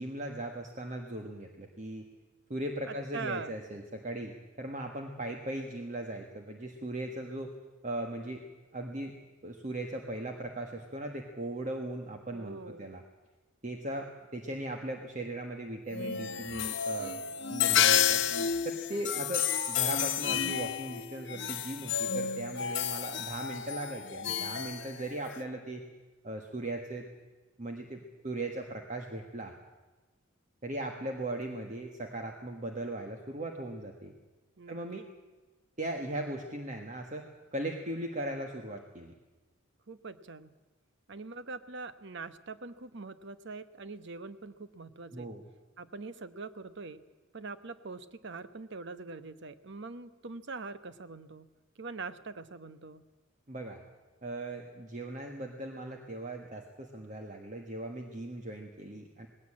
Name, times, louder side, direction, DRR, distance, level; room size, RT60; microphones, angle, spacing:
voice 1, 0.0-2.1 2.5-7.5 7.8-8.4 8.7-9.1 9.4-13.0 13.6-17.2 17.5-18.2 18.6-25.8 26.2-27.1 27.6-29.5 30.6-34.1 34.7-35.0 35.8-39.1 45.1-45.4 53.5-53.8 54.2-59.3, right 1 dB, 40° right, 3 dB, 1.5 m, -38 dB
voice 2, 2.9-3.5 12.3-12.8 34.6-35.1 39.9-40.5 41.1-45.3 45.8-47.0 47.3-51.5 51.8-53.1, right 4 dB, 60° right, 12 dB, 1.0 m, -43 dB
sound 1, 15.9-25.4, left 9 dB, 60° left, 1.0 m, -31 dB
19.0 x 16.5 x 8.7 m, 1.2 s
head